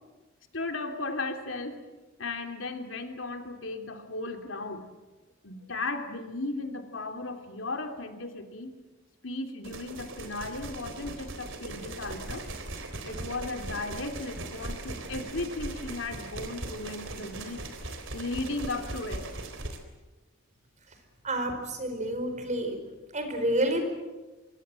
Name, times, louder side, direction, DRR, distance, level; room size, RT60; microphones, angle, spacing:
voice 1, 0.5-1.8 2.2-4.9 5.4-8.7 9.2-12.4 13.0-19.2, left 2 dB, 70° left, 5 dB, 3.1 m, -36 dB
sound 1, 9.6-19.8, right 2 dB, 65° right, 3.8 m, -39 dB
voice 2, 21.2-22.8 23.1-23.8, right 1 dB, 35° right, 6 dB, 4.9 m, -29 dB
25.5 x 24.5 x 7.8 m, 1.2 s
head